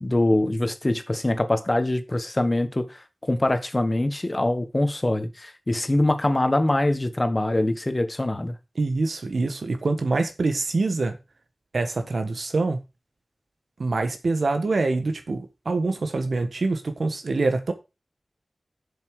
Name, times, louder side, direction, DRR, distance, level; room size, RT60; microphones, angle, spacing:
voice 1, 0.0-8.5, left 1 dB, 30° left, 1.4 m, -24 dB
voice 2, 8.7-11.2 11.7-12.8 13.8-17.7, right 3 dB, 90° right, 1.4 m, -25 dB
7.6 x 7.1 x 4.8 m
wide cardioid pair, 80°, 0 cm